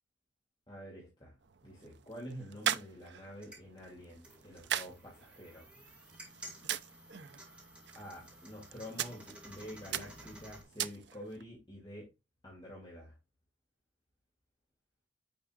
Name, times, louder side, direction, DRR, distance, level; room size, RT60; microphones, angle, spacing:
voice 1, 0.7-1.4 1.6-5.7 7.9-12.1 12.4-13.1, equal, 25° left, 2.6 m, -48 dB
sound 1, 1.4-11.4, right 10 dB, 60° right, 0.6 m, -41 dB
sound 2, 3.2-10.6, right 1 dB, 5° right, 2.1 m, -54 dB
9.3 x 5.8 x 2.4 m
head